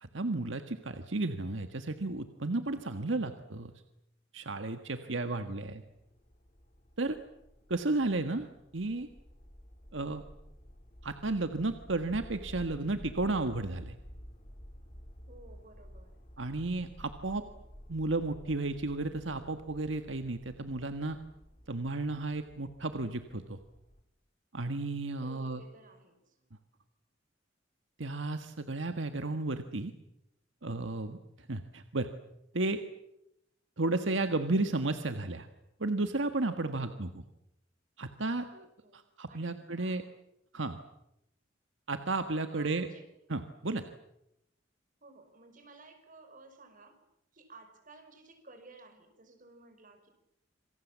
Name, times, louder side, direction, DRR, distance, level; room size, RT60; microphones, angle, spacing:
voice 1, 0.0-3.7 4.3-5.8 7.0-7.2 7.7-8.5 8.7-9.1 9.9-10.2 11.0-13.9 16.4-17.4 17.9-21.2 21.7-23.6 24.5-25.6 28.0-29.9 30.6-32.1 32.5-32.8 33.8-35.5 35.8-37.1 38.0-38.7 38.9-40.0 40.5-40.8 41.9-42.9 43.3-43.8, right 2 dB, 75° right, 8 dB, 1.6 m, -33 dB
voice 2, 4.9-5.9 15.3-16.2 25.2-26.5 36.6-37.2 38.8-39.0 39.3-40.1 42.5-43.1 45.0-47.0 47.3-50.1, right 3 dB, 45° right, 7 dB, 5.3 m, -55 dB
sound 1, 5.7-24.0, equal, 40° left, 3.5 m, -52 dB
27.5 x 26.5 x 7.5 m, 0.83 s
head